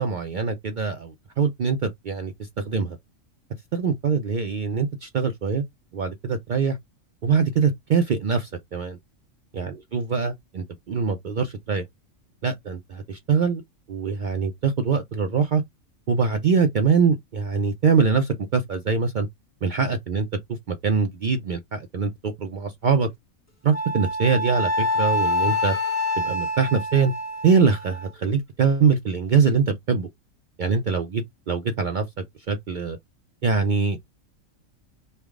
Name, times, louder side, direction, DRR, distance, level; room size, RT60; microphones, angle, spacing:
voice 1, 0.0-3.0 3.7-5.6 5.9-6.8 7.2-9.0 9.5-11.9 12.4-13.6 13.9-15.6 16.1-19.3 19.6-20.3 20.7-23.1 23.6-25.8 26.2-27.1 27.4-30.1 30.6-32.1 32.5-33.0 33.4-34.1, right 5 dB, 75° right, 0.4 m, -23 dB
Wind instrument woodwind instrument, 23.7-28.1, left 2 dB, 15° left, 0.7 m, -26 dB
3.3 x 2.2 x 3.5 m
omnidirectional pair, 1.4 m